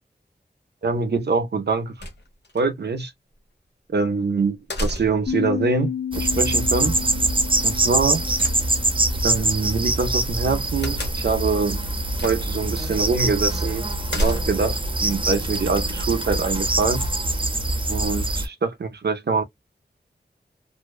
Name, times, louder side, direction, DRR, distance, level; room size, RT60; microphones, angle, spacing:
voice 1, 0.8-1.9 2.5-3.1 3.9-7.0 7.6-8.2 9.2-11.8 12.2-17.0 17.9-19.4, right 4 dB, 70° right, 0.5 m, -24 dB
sound 1, 2.0-2.6 4.7-5.4 8.4-9.1 10.8-11.4 12.2-12.6 12.9-13.0 14.1-14.8, equal, 75° left, 0.8 m, -29 dB
sound 2, 5.3-10.4, left 8 dB, 50° left, 1.2 m, -33 dB
sound 3, 6.1-18.5, right 2 dB, 30° right, 0.6 m, -24 dB
2.6 x 2.1 x 2.3 m
wide cardioid pair, 60°, 18 cm